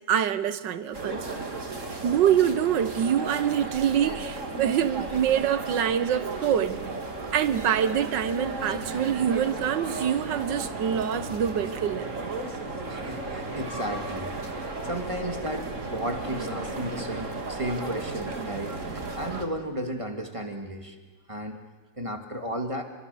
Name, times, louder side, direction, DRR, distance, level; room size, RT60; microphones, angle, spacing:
voice 1, 0.1-1.4 2.0-6.8 7.3-12.1, right 9 dB, 80° right, 1.7 m, -25 dB
sound 1, 0.9-19.4, right 3 dB, 45° right, 2.5 m, -34 dB
voice 2, 12.9-14.3 14.8-18.7 19.2-21.0 21.3-21.6 22.0-22.8, right 1 dB, 20° right, 2.1 m, -33 dB
28.0 x 23.0 x 7.0 m
omnidirectional pair, 1.9 m